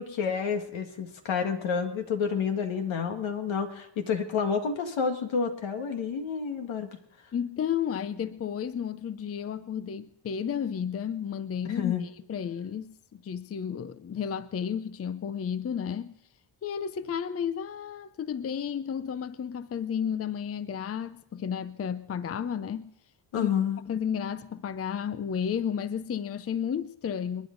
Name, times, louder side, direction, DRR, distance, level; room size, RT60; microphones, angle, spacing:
voice 1, 0.0-6.9 11.7-12.0 23.3-23.8, left 6 dB, 75° left, 2.0 m, -29 dB
voice 2, 7.3-11.9 12.3-13.0 13.2-16.1 16.6-22.9 23.3-23.5 23.9-27.5, left 8 dB, 30° left, 0.6 m, -32 dB
29.0 x 10.5 x 3.9 m
cardioid pair, 90°, 47 cm